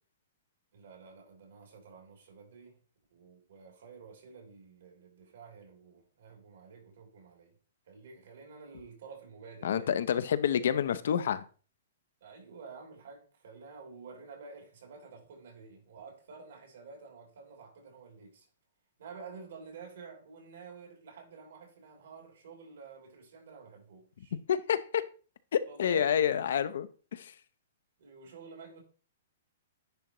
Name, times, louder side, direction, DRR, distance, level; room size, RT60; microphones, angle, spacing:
voice 1, 0.7-2.8 3.1-7.5 7.8-10.2 12.2-18.5 19.0-24.4 25.6-26.4 28.0-28.8, right 5 dB, 75° right, 3.0 m, -50 dB
voice 2, 9.6-11.4 24.5-25.0 25.5-27.3, left 8 dB, 70° left, 0.5 m, -28 dB
10.0 x 3.7 x 3.0 m
hypercardioid pair, 155°, 0 cm